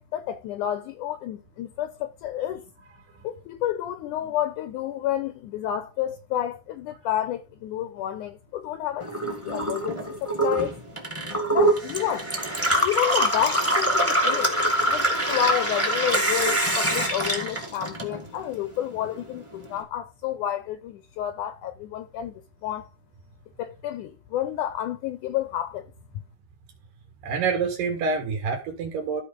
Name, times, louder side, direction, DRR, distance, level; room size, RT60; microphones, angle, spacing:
voice 1, 0.0-2.6 3.2-10.7 11.5-12.3 12.8-14.6 14.9-22.9 23.6-25.9, left 11 dB, 75° left, 1.9 m, -30 dB
Gurgling / Water tap faucet / Sink (filling or washing), 9.0-18.5 18.8-19.7, right 1 dB, 5° right, 1.5 m, -24 dB
voice 2, 27.2-29.2, right 5 dB, 65° right, 3.1 m, -27 dB
14.0 x 4.7 x 5.2 m
omnidirectional pair, 4.3 m